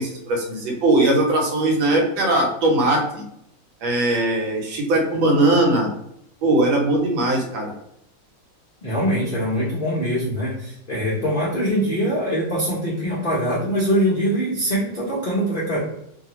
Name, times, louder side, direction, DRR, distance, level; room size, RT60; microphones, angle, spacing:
voice 1, 0.0-3.2 3.8-5.9 6.4-7.7, right 2 dB, 90° right, 0 dB, 1.6 m, -20 dB
voice 2, 8.8-15.8, equal, 85° left, -7 dB, 0.4 m, -23 dB
3.2 x 2.4 x 2.9 m, 0.75 s
omnidirectional pair, 2.1 m